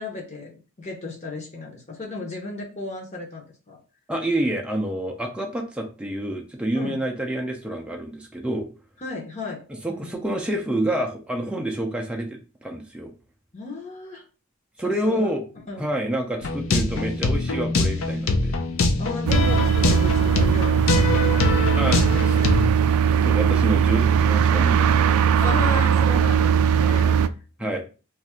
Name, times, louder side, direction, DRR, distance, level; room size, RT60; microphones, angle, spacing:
voice 1, 0.0-3.8 6.7-7.0 9.0-10.1 11.4-11.6 13.5-14.2 14.8-15.4 15.7-15.9 19.0-22.8 23.4-23.5 25.4-27.2 27.6-27.7, left 3 dB, 30° left, 0 dB, 0.7 m, -35 dB
voice 2, 4.1-8.7 9.8-13.1 14.8-15.4 15.8-18.5 21.8-22.4 23.0-25.1 27.6-27.8, right 1 dB, 5° right, 0 dB, 0.4 m, -28 dB
sound 1, 16.4-22.7, left 3 dB, 65° left, 0.5 m, -23 dB
sound 2, 19.3-27.3, right 7 dB, 80° right, 0.3 m, -19 dB
2.6 x 2.4 x 4.2 m, 0.34 s
head